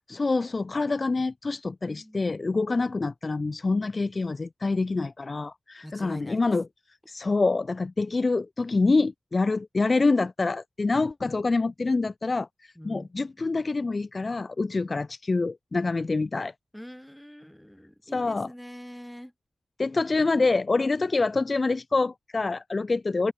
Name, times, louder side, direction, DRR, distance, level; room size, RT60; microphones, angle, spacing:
voice 1, 0.1-6.7 7.1-12.5 12.8-16.5 18.1-18.5 19.8-23.3, left 3 dB, 45° left, 0.6 m, -26 dB
voice 2, 1.9-2.3 5.8-6.5 12.8-13.1 16.7-19.3, equal, 5° left, 2.2 m, -44 dB
open air
cardioid pair, 50°, 0 cm